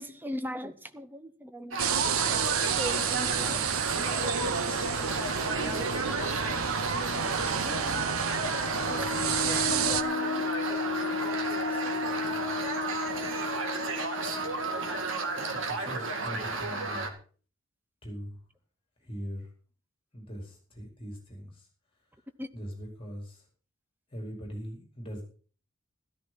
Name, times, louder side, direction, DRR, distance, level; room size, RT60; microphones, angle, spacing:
voice 1, 0.0-5.1 5.5-8.1 8.7-10.6 11.7-12.4 15.8-16.0 22.4-22.5, equal, 10° right, 0.9 m, -42 dB
sound 1, 1.7-17.1, right 3 dB, 65° right, 2.1 m, -33 dB
sound 2, 1.8-10.0, right 6 dB, 85° right, 0.9 m, -30 dB
sound 3, 8.6-16.0, left 6 dB, 75° left, 1.2 m, -35 dB
voice 2, 15.3-17.1 18.0-18.4 19.1-19.5 20.1-21.5 22.5-23.4 24.1-25.2, equal, 25° left, 4.7 m, -40 dB
13.5 x 13.5 x 4.3 m
head